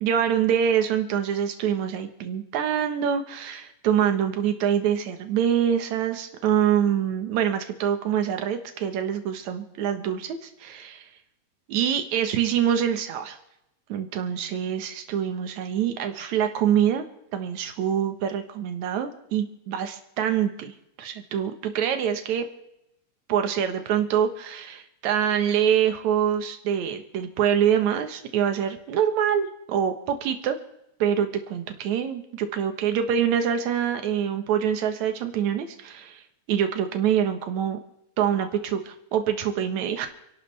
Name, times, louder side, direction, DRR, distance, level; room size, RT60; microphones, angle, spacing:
voice 1, 0.0-11.0 11.7-13.4 13.9-17.1 17.3-20.7 21.0-22.5 23.3-30.6 31.0-36.2 36.5-37.8 38.2-40.1, right 9 dB, 65° right, 7 dB, 2.6 m, -25 dB
28.5 x 12.0 x 3.4 m, 0.85 s
omnidirectional pair, 3.7 m